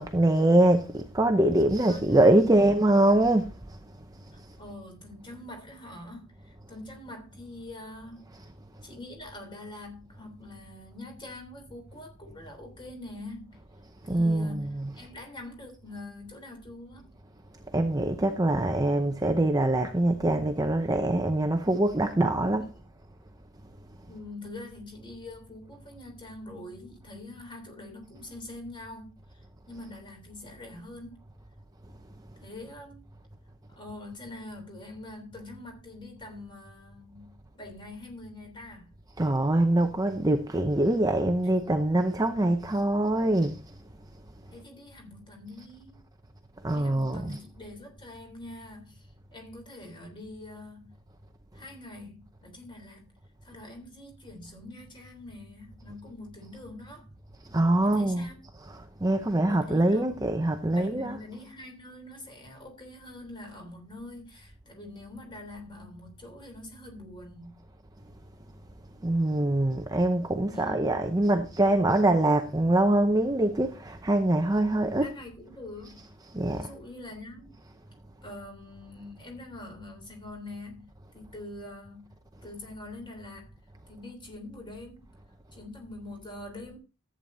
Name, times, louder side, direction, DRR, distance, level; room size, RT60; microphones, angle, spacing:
voice 1, 0.0-3.8 8.3-8.4 14.0-15.1 17.7-22.7 39.2-43.6 46.6-47.4 57.5-58.3 58.6-61.2 69.0-75.1 76.0-76.7, right 1 dB, 15° right, 0.7 m, -24 dB
voice 2, 1.9-2.5 4.3-8.3 8.8-13.6 14.1-17.1 24.0-31.2 32.4-33.0 33.7-39.0 44.5-46.0 46.7-50.9 51.5-53.1 53.4-57.1 57.8-58.4 59.5-60.2 60.7-67.5 70.5-71.0 75.0-76.0 76.5-77.6 78.2-82.1 82.4-83.6 83.9-85.1 85.5-86.8, left 2 dB, 25° left, 3.4 m, -44 dB
14.0 x 8.8 x 2.7 m
head